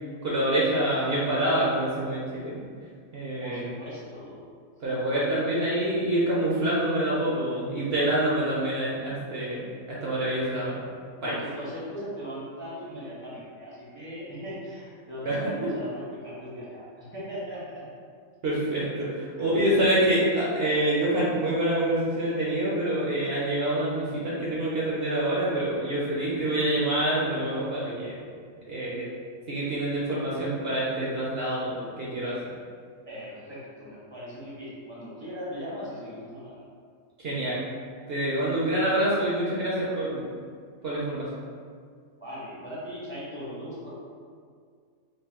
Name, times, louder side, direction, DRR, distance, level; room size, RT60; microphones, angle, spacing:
voice 1, 0.2-2.6 3.1-3.7 4.8-10.8 11.2-11.4 15.2-15.4 18.4-28.2 28.7-29.1 29.5-32.4 37.2-37.6 38.1-40.3 40.8-41.3, right 1 dB, 55° right, -6 dB, 0.8 m, -26 dB
voice 2, 3.4-4.5 4.8-4.9 11.2-17.8 19.4-19.5 33.1-36.6 42.2-43.9, equal, 10° left, -8 dB, 0.7 m, -39 dB
4.1 x 2.7 x 2.9 m, 2.1 s
omnidirectional pair, 1.4 m